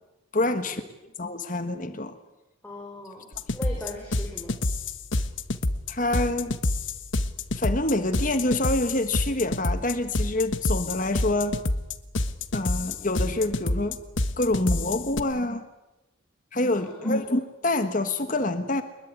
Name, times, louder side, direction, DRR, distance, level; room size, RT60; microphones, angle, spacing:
voice 1, 0.3-0.8 1.2-2.2 5.9-6.6 7.6-11.5 12.5-14.0 14.4-15.7 16.5-18.8, left 2 dB, 40° left, 9 dB, 1.5 m, -26 dB
voice 2, 2.6-3.3 3.5-4.5 16.7-17.2, left 1 dB, 10° left, 0 dB, 4.4 m, -39 dB
sound 1, 3.3-15.2, left 2 dB, 70° left, 1.4 m, -28 dB
24.0 x 22.0 x 9.7 m, 1.0 s
head